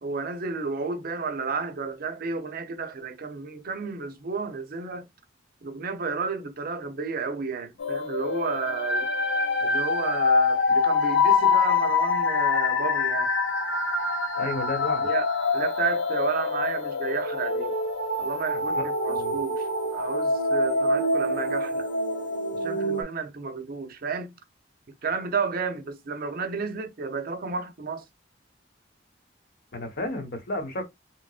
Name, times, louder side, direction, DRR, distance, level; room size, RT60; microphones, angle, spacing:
voice 1, 0.0-5.1 5.6-9.1 9.6-13.3 15.0-15.3 15.5-17.7 18.2-21.9 22.6-24.3 25.0-28.0, right 5 dB, 50° right, 0.6 m, -32 dB
sound 1, 7.8-23.0, left 3 dB, 75° left, 0.8 m, -25 dB
voice 2, 14.3-15.1 18.8-19.4 29.7-30.8, left 2 dB, 55° left, 1.1 m, -32 dB
3.6 x 3.0 x 2.4 m
head